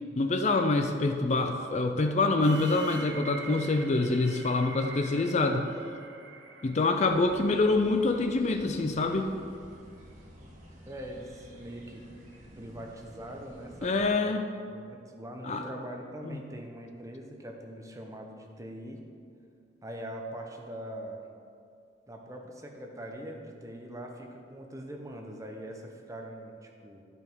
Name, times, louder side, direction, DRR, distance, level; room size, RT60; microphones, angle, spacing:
voice 1, 0.2-5.7 6.6-9.3 13.8-14.4 15.4-15.7 16.2-16.4, left 3 dB, 35° left, 5 dB, 0.4 m, -26 dB
sound 1, 2.4-9.3, right 5 dB, 70° right, 0.8 m, -46 dB
sound 2, 6.9-14.1, equal, 40° right, 1.6 m, -51 dB
voice 2, 10.9-12.0 12.6-14.4 14.7-19.0 19.8-21.2 22.1-27.0, right 1 dB, 15° right, 2 dB, 0.8 m, -42 dB
11.5 x 5.4 x 4.6 m, 2.4 s
head